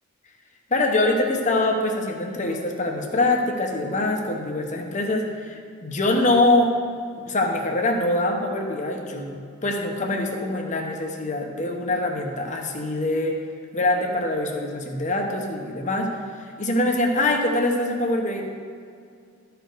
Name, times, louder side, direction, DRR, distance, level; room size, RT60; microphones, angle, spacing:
voice 1, 0.7-6.7 7.2-9.4 9.6-13.4 13.7-16.1 16.6-18.5, left 2 dB, 35° left, 2 dB, 1.0 m, -24 dB
12.5 x 5.1 x 4.6 m, 2.3 s
head